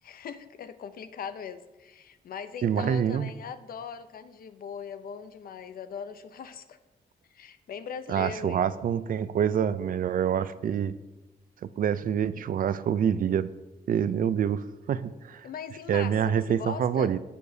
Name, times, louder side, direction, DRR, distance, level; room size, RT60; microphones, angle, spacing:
voice 1, 0.0-6.8 7.3-8.8 15.4-17.1, left 7 dB, 65° left, 11 dB, 0.6 m, -40 dB
voice 2, 2.6-3.3 8.1-10.9 11.6-13.5 13.9-15.5 15.9-17.2, right 8 dB, 60° right, 15 dB, 0.4 m, -26 dB
17.0 x 6.7 x 2.7 m, 1.1 s
wide cardioid pair, 125°, 16 cm